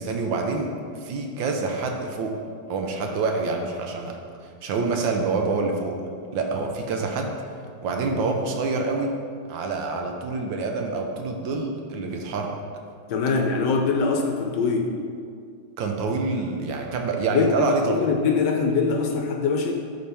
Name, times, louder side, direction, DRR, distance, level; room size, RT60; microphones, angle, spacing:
voice 1, 0.0-2.4 2.7-4.2 4.6-6.0 6.3-7.4 7.8-9.1 9.5-12.6 15.8-18.0, right 3 dB, 75° right, 2 dB, 1.4 m, -26 dB
voice 2, 13.1-15.0 17.3-19.7, left 4 dB, 70° left, 3 dB, 1.2 m, -23 dB
11.5 x 4.3 x 3.4 m, 2.3 s
omnidirectional pair, 2.2 m